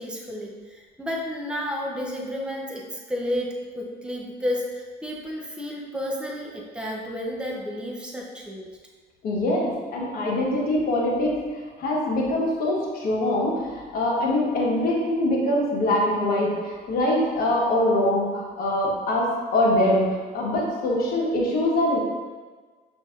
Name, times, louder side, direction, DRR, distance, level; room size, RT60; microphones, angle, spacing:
voice 1, 0.0-8.7, left 1 dB, 5° right, -2 dB, 0.6 m, -31 dB
voice 2, 9.2-22.0, left 1 dB, 60° left, -3 dB, 1.1 m, -23 dB
6.0 x 2.6 x 2.4 m, 1.4 s
cardioid pair, 110°, 17 cm